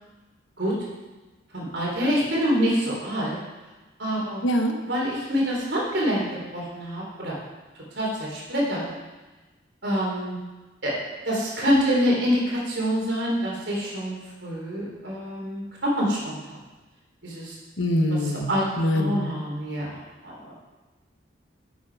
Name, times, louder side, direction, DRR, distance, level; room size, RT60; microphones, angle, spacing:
voice 1, 1.5-3.4 4.0-4.4 4.9-6.2 6.5-7.4 8.0-8.9 9.8-10.4 10.8-10.9 11.3-14.2 14.4-16.5 17.2-17.5 18.1-18.2 18.5-18.6 18.9-20.5, equal, 70° right, -3 dB, 3.7 m, -26 dB
voice 2, 4.4-4.8 17.8-19.3, left 1 dB, 85° left, 4 dB, 1.2 m, -24 dB
11.0 x 8.1 x 4.8 m, 1.2 s
head